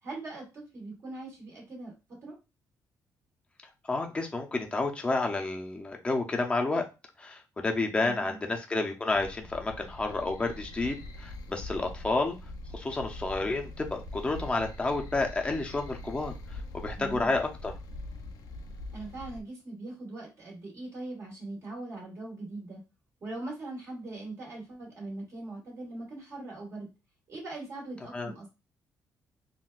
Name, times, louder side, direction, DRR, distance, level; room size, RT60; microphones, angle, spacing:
voice 1, 0.0-1.9 2.2-2.4 8.0-8.4 17.0-17.3 18.9-22.8 23.2-26.9 27.3-28.5, right 2 dB, 45° right, -3 dB, 1.4 m, -41 dB
voice 2, 3.9-6.8 7.2-12.4 12.7-16.3 16.7-17.7 28.1-28.3, left 3 dB, 15° left, 2 dB, 0.6 m, -30 dB
sound 1, 9.1-19.4, left 1 dB, 65° left, 0.4 m, -43 dB
3.7 x 2.2 x 2.4 m, 0.28 s
cardioid pair, 135°, 7 cm